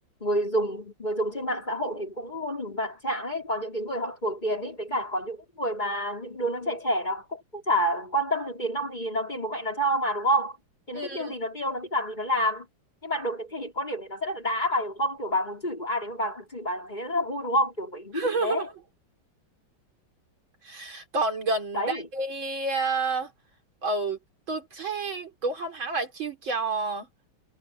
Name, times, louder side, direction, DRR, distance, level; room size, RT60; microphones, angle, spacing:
voice 1, 0.2-10.6 10.9-12.7 13.0-18.7 21.7-22.1, equal, 20° left, 4.9 m, -29 dB
voice 2, 10.9-11.4 18.1-18.6 20.6-23.3 23.8-24.2 24.5-27.1, right 3 dB, 65° right, 4.5 m, -29 dB
omnidirectional pair, 2.4 m